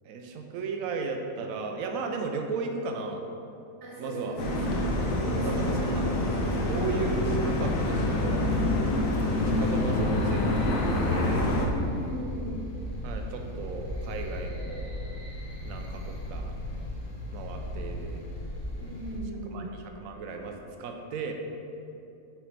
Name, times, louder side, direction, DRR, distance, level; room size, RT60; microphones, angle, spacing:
voice 1, 0.0-3.2 4.0-4.4 5.4-6.0 6.6-8.5 9.3-11.5 13.0-14.9 15.6-16.5 17.3-18.3 19.5-21.3, right 4 dB, 75° right, 4 dB, 1.0 m, -35 dB
voice 2, 3.8-5.7 11.7-12.6 18.8-19.7, right 1 dB, 50° right, -5 dB, 1.5 m, -37 dB
sound 1, 4.4-11.7, left 1 dB, 70° left, 1.1 m, -26 dB
sound 2, 8.8-19.2, left 1 dB, 40° left, 1.1 m, -37 dB
6.1 x 5.0 x 3.3 m, 2.7 s
omnidirectional pair, 1.5 m